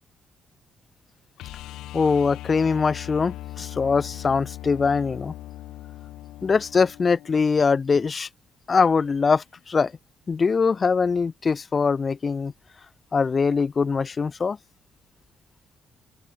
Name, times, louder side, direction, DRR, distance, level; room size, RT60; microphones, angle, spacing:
sound 1, 1.4-7.3 9.8-9.9, left 15 dB, 90° left, 4.0 m, -39 dB
voice 1, 1.9-5.3 6.4-8.3 8.7-9.9 10.3-12.5 13.1-14.6, left 5 dB, 35° left, 2.0 m, -22 dB
open air
cardioid pair, 90°, 0 cm